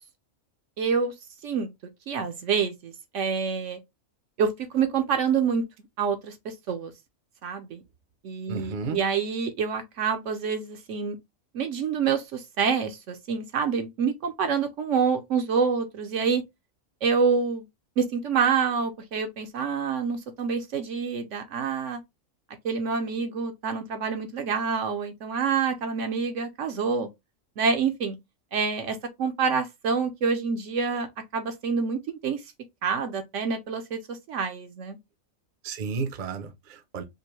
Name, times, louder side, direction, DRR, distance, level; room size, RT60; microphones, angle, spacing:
voice 1, 0.8-1.1 1.4-1.7 2.1-3.8 4.4-5.6 6.0-6.9 7.4-7.8 8.2-11.2 11.5-16.4 17.0-17.6 18.0-22.0 22.6-27.1 27.6-28.2 28.5-31.1 31.3-32.4 32.8-35.0, right 6 dB, 65° right, 1.0 m, -27 dB
voice 2, 8.5-9.0 35.6-37.0, right 5 dB, 45° right, 0.7 m, -33 dB
5.2 x 2.1 x 3.0 m
omnidirectional pair, 1.4 m